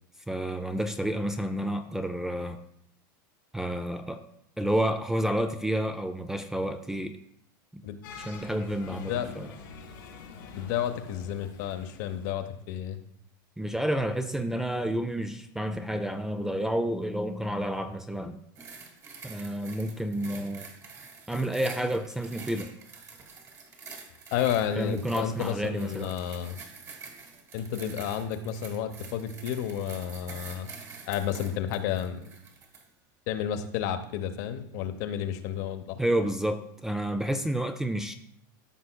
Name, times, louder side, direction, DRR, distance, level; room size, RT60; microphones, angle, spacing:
voice 1, 0.3-2.6 3.5-4.2 4.6-7.2 7.7-7.8 8.2-9.5 13.6-18.4 19.2-20.7 21.3-22.7 24.7-26.2 36.0-38.1, right 1 dB, 5° right, 9 dB, 0.3 m, -30 dB
sound 1, 8.0-12.6, left 5 dB, 85° left, 3.0 m, -46 dB
voice 2, 8.9-9.4 10.5-13.0 24.3-26.6 27.5-30.7 31.1-32.3 33.3-36.0, left 9 dB, 60° left, 8 dB, 0.8 m, -31 dB
sound 2, 18.6-32.9 33.5-33.7, right 5 dB, 30° right, 1.4 m, -47 dB
14.0 x 5.5 x 2.2 m, 0.71 s
supercardioid pair, 140°, 11 cm